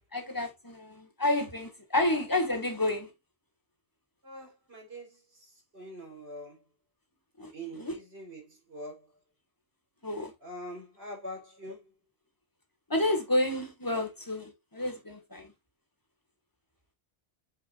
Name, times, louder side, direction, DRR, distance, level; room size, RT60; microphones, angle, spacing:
voice 1, 0.1-3.1 7.4-7.5 7.8-8.0 10.0-10.3 12.9-15.5, left 1 dB, 20° left, 1.7 m, -30 dB
voice 2, 4.2-5.2 5.7-6.6 7.5-9.0 10.4-11.8, equal, 75° right, 4.0 m, -43 dB
8.6 x 4.9 x 2.5 m
omnidirectional pair, 1.1 m